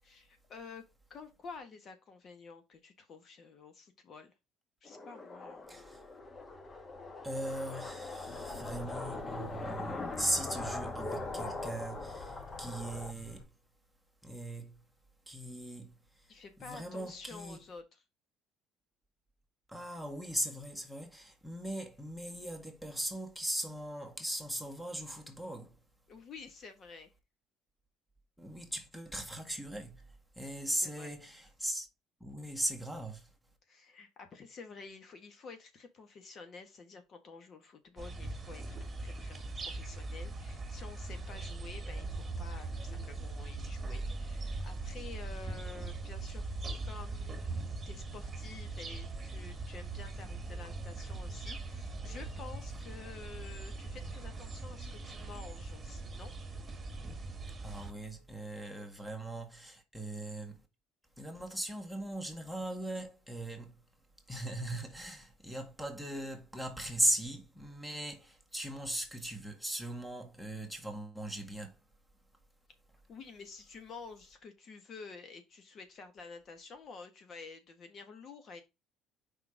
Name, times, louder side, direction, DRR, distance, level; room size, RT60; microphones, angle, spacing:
voice 1, 0.0-0.8 1.1-4.3 4.8-5.8 16.3-18.0 26.1-27.1 30.7-31.1 33.7-56.3 73.1-78.6, left 4 dB, 45° left, 1.6 m, -50 dB
sound 1, 4.8-13.1, left 3 dB, 25° left, 1.2 m, -41 dB
voice 2, 5.7-6.1 7.2-13.5 14.2-14.8 15.3-16.3 16.6-17.6 19.7-25.8 28.4-31.9 32.2-33.3 57.6-60.6 61.2-63.8 64.3-71.8, right 1 dB, 5° left, 1.9 m, -39 dB
sound 2, 8.2-13.4, left 2 dB, 65° left, 3.3 m, -52 dB
sound 3, 38.0-57.9, right 3 dB, 25° right, 2.3 m, -41 dB
5.4 x 4.0 x 5.0 m
supercardioid pair, 90°, 0 cm